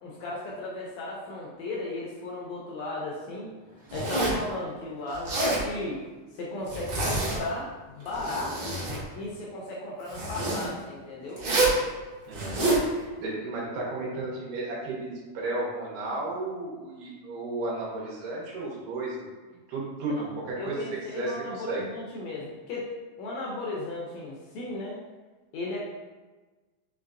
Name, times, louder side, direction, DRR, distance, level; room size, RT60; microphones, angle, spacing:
voice 1, 0.0-6.0 6.3-8.8 9.1-11.4 20.2-20.3 20.6-22.9 23.2-25.0 25.5-25.8, left 2 dB, 80° left, -4 dB, 1.6 m, -35 dB
Zipper (clothing), 3.9-4.5 5.1-5.6 6.7-7.6 8.0-9.0 10.1-10.7 11.4-11.8 12.3-12.8, right 2 dB, 60° right, 1.3 m, -27 dB
voice 2, 12.3-19.3 19.7-20.8 21.1-21.8, right 2 dB, 75° right, -4 dB, 2.4 m, -34 dB
5.5 x 3.2 x 2.5 m, 1.3 s
omnidirectional pair, 3.8 m